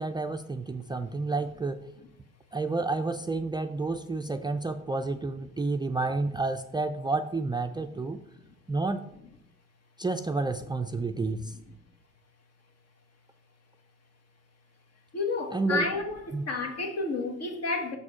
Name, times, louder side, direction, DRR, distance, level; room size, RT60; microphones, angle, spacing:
voice 1, 0.0-1.9 2.5-8.2 8.7-9.0 10.0-11.5 15.5-15.9 16.3-16.4, right 3 dB, 15° right, 0.3 m, -30 dB
voice 2, 15.1-18.0, left 3 dB, 55° left, 1.3 m, -31 dB
6.5 x 4.9 x 4.8 m
cardioid pair, 90°, 30 cm